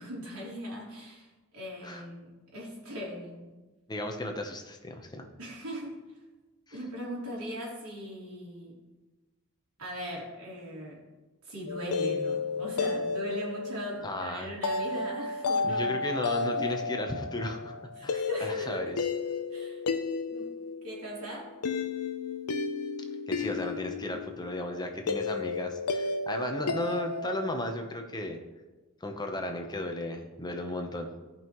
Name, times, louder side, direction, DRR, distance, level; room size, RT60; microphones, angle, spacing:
voice 1, 0.0-3.5 5.4-6.0 6.7-8.8 9.8-11.0 11.4-16.2 16.5-16.7 18.0-18.9 19.5-19.8 20.3-20.5 20.8-21.5, equal, 75° right, -5 dB, 3.2 m, -39 dB
voice 2, 3.9-5.3 14.0-14.5 15.7-17.7 18.0-19.0 23.3-28.4 29.0-31.1, left 1 dB, 20° left, 4 dB, 0.9 m, -35 dB
sound 1, 11.7-27.5, left 4 dB, 90° left, 0.6 m, -33 dB
15.5 x 5.6 x 3.1 m, 1.2 s
head